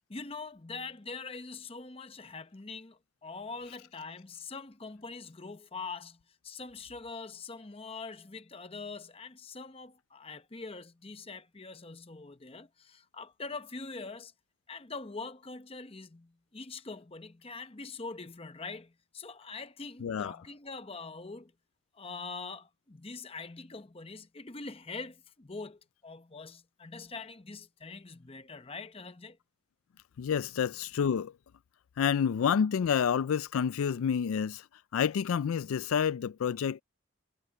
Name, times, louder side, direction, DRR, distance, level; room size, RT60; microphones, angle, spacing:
voice 1, 0.1-14.3 14.7-21.5 21.9-29.4, left 4 dB, 25° left, 0.8 m, -43 dB
voice 2, 20.0-20.3 30.2-31.3 32.0-34.6 34.9-36.8, left 7 dB, 75° left, 0.3 m, -28 dB
head